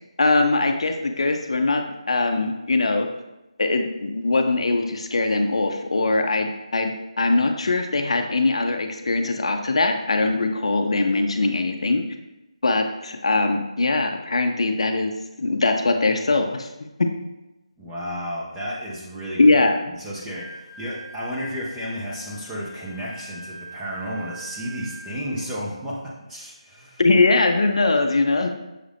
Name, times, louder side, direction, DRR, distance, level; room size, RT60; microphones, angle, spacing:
voice 1, 0.2-3.1 3.6-12.0 12.6-15.1 15.4-16.7 19.4-19.8 27.0-28.5, left 3 dB, 55° left, 5 dB, 0.4 m, -21 dB
voice 2, 17.8-19.4 20.0-26.0 26.3-27.0, equal, 5° right, -6 dB, 0.4 m, -32 dB
Wind instrument woodwind instrument, 20.2-25.5, right 3 dB, 35° right, 0.8 m, -43 dB
6.3 x 2.4 x 3.3 m, 1.0 s
figure-of-eight pair, 175°, 4 cm